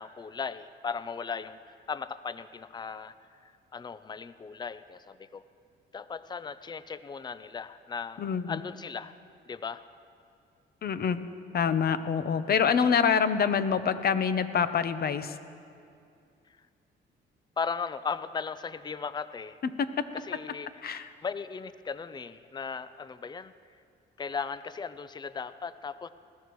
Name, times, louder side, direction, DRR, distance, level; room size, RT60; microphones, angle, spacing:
voice 1, 0.0-3.1 3.7-5.4 5.9-9.1 9.5-9.8 12.5-13.0 16.5-16.6 17.6-19.6 20.1-20.7 21.2-23.5 24.2-26.1, left 5 dB, 20° left, 14 dB, 0.5 m, -37 dB
voice 2, 8.2-8.6 10.8-11.2 11.5-15.4 20.8-21.1, left 7 dB, 50° left, 11 dB, 0.9 m, -26 dB
20.5 x 15.0 x 3.2 m, 2.4 s
cardioid pair, 90°, 20 cm